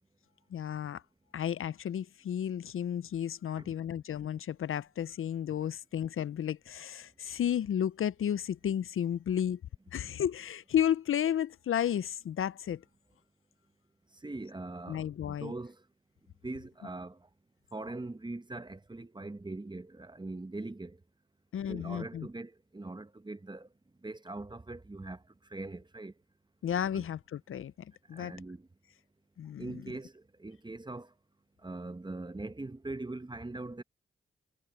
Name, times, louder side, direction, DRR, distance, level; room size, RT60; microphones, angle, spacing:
voice 1, 0.5-1.0 1.3-9.6 9.9-12.8 14.9-15.5 21.5-22.3 26.6-27.7 28.1-28.3 29.4-29.8, left 9 dB, 75° left, 0.5 m, -32 dB
voice 2, 14.2-15.8 16.4-17.2 17.7-21.0 21.7-23.7 24.0-25.2 25.5-26.1 26.9-27.1 28.1-28.7 29.6-31.1 31.6-33.8, right 2 dB, 20° right, 1.0 m, -41 dB
cardioid pair, 55°, 21 cm